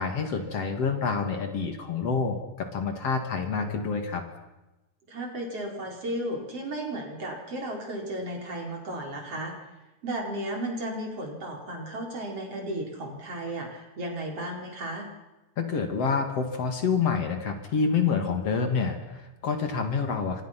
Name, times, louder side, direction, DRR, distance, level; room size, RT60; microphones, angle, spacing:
voice 1, 0.0-4.2 15.6-20.4, left 5 dB, 55° left, 5 dB, 3.2 m, -27 dB
voice 2, 5.1-9.6 10.0-15.1, right 1 dB, 50° right, 1 dB, 5.6 m, -34 dB
28.0 x 25.5 x 5.9 m, 1.0 s
omnidirectional pair, 3.4 m